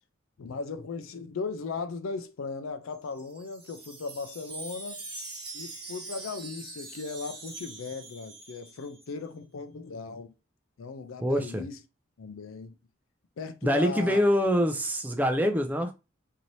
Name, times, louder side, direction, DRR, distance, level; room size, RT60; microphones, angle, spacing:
voice 1, 0.4-5.0 5.5-10.3 10.8-11.8 12.2-12.7 13.4-14.2, left 4 dB, 85° left, 0.5 m, -37 dB
Wind chime, 2.9-9.1, right 3 dB, 25° right, 0.9 m, -43 dB
voice 2, 11.2-11.6 13.6-15.9, equal, 10° right, 0.4 m, -25 dB
3.1 x 2.7 x 2.6 m
head